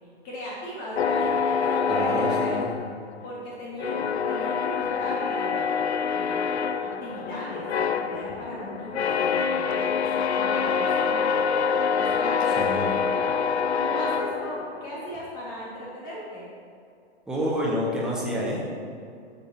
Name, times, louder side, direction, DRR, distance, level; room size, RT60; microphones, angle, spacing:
voice 1, 0.2-2.8 3.2-5.8 6.1-6.5 6.8-11.4 11.9-13.3 13.8-16.5, equal, 30° left, -5 dB, 1.7 m, -38 dB
sound 1, 1.0-3.4 3.8-15.0, left 6 dB, 75° left, 0.5 m, -26 dB
voice 2, 1.9-2.7 12.5-12.9 17.3-18.8, equal, ahead, -6 dB, 1.5 m, -28 dB
12.0 x 6.7 x 2.8 m, 2.4 s
figure-of-eight pair, 115°, 33 cm